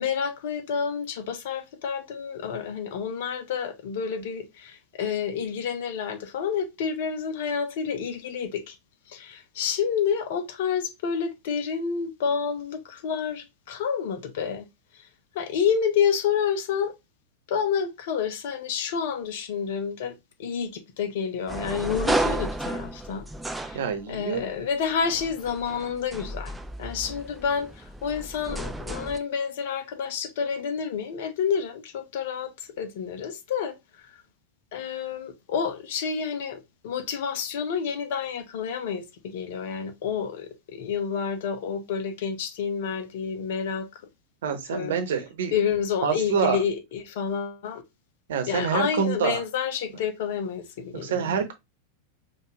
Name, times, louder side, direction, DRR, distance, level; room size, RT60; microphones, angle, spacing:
voice 1, 0.0-8.8 9.1-14.6 14.9-15.1 15.3-16.9 17.5-23.3 23.5-33.8 34.7-43.9 44.7-45.0 45.5-47.8 48.5-51.4, left 7 dB, 55° left, 0.8 m, -29 dB
sound 1, 21.5-24.4 25.0-29.2, right 1 dB, 5° right, 0.4 m, -32 dB
voice 2, 23.7-24.4 44.4-45.5 46.0-46.6 48.3-49.4 50.9-51.5, right 7 dB, 60° right, 1.0 m, -26 dB
5.1 x 2.5 x 3.0 m
figure-of-eight pair, 90°, 0 cm